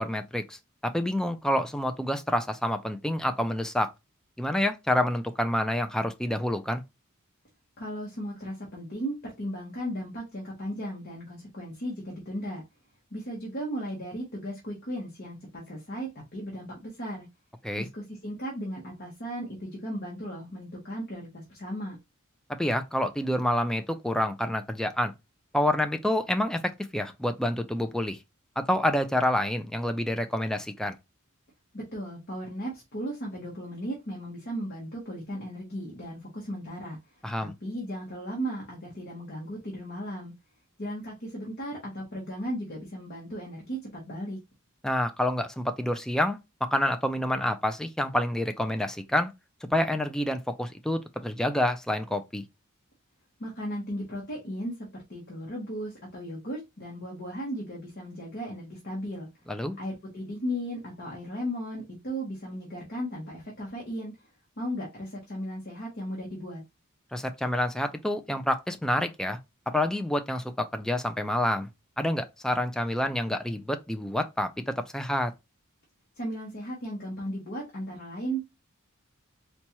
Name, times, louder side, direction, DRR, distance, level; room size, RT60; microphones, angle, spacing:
voice 1, 0.0-3.9 4.4-6.8 17.6-17.9 22.6-25.1 25.5-28.2 28.6-30.9 37.2-37.5 44.8-49.3 49.7-52.4 59.5-59.8 67.1-69.4 69.7-71.7 72.0-75.3, left 1 dB, 5° left, 0.3 m, -28 dB
voice 2, 7.8-12.6 13.1-17.3 17.8-22.0 31.7-37.0 37.4-40.3 40.8-44.4 53.4-59.3 59.8-64.1 64.6-66.6 76.2-78.5, equal, 50° left, 1.0 m, -36 dB
4.2 x 2.3 x 2.9 m
head